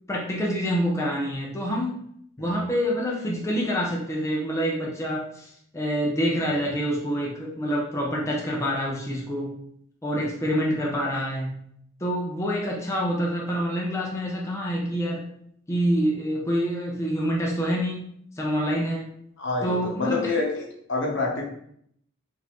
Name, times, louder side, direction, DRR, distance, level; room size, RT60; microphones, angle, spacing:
voice 1, 0.1-2.0 2.4-9.5 10.0-11.5 12.0-15.2 15.7-18.1 18.4-19.1 19.6-20.3, equal, 15° left, -3 dB, 0.5 m, -26 dB
voice 2, 19.4-20.6 20.9-21.4, left 3 dB, 65° left, -1 dB, 0.9 m, -27 dB
3.8 x 2.5 x 2.9 m, 0.68 s
head